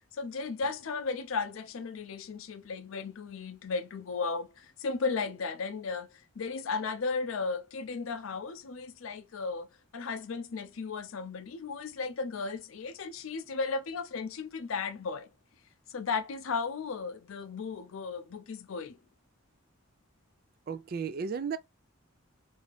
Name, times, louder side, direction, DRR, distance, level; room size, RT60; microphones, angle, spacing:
voice 1, 0.1-6.1 6.4-9.7 9.9-15.3 15.9-19.0, left 4 dB, 85° left, 0.5 m, -35 dB
voice 2, 20.7-21.6, right 6 dB, 45° right, 0.4 m, -34 dB
2.7 x 2.5 x 3.2 m
head